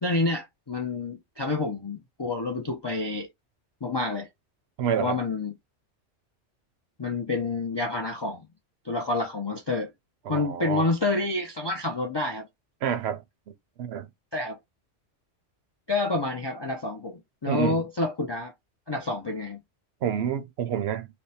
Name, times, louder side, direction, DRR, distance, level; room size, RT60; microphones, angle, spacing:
voice 1, 0.0-3.3 3.8-4.3 5.0-5.5 7.0-8.5 8.8-9.9 10.3-12.5 14.3-14.6 15.9-18.5 18.9-19.6, left 3 dB, 45° left, 0.3 m, -28 dB
voice 2, 4.8-5.2 10.3-10.9 12.8-13.2 13.8-14.1 17.5-17.8 20.0-21.1, right 8 dB, 70° right, 0.8 m, -28 dB
3.4 x 2.2 x 4.1 m
omnidirectional pair, 1.2 m